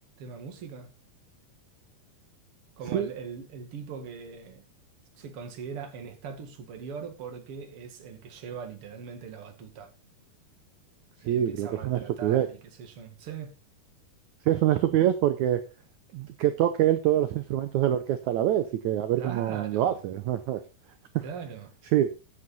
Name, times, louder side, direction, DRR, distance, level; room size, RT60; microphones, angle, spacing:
voice 1, 0.2-0.9 2.8-4.6 5.2-9.9 11.2-13.5 19.2-20.0 21.2-21.7, right 6 dB, 45° right, 2.3 m, -40 dB
voice 2, 11.3-12.5 14.5-15.6 16.1-20.6 21.1-21.2 21.9-22.1, right 12 dB, 85° right, 1.6 m, -25 dB
10.5 x 9.5 x 4.0 m
omnidirectional pair, 4.4 m